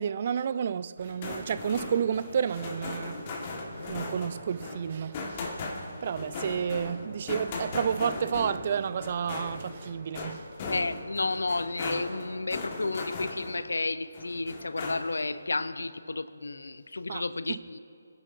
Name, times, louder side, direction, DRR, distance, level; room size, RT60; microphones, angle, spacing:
voice 1, 0.0-3.3 3.8-5.6 6.0-10.4 17.1-17.6, right 7 dB, 40° right, 0.3 m, -31 dB
sound 1, 1.0-13.7 14.1-15.3, left 3 dB, 30° left, 1.5 m, -38 dB
sound 2, 1.8-10.1, right 2 dB, 25° right, 2.7 m, -50 dB
voice 2, 10.7-17.8, left 3 dB, 70° left, 0.5 m, -32 dB
23.5 x 10.5 x 2.6 m
figure-of-eight pair, 150°, 0 cm